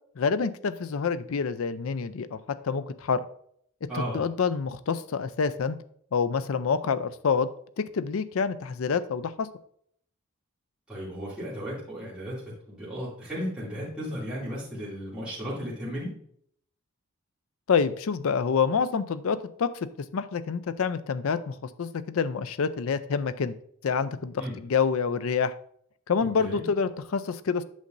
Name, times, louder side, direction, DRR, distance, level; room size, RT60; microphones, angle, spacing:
voice 1, 0.2-2.4 2.6-3.2 3.8-5.8 6.1-7.5 7.8-9.5 17.7-19.7 20.1-23.5 23.8-25.5 26.1-27.6, left 5 dB, 70° left, 14 dB, 0.4 m, -27 dB
voice 2, 3.9-4.2 10.9-12.4 12.7-16.1 24.4-24.5 26.2-26.7, equal, 5° right, -10 dB, 2.5 m, -35 dB
8.3 x 6.4 x 2.6 m, 0.65 s
head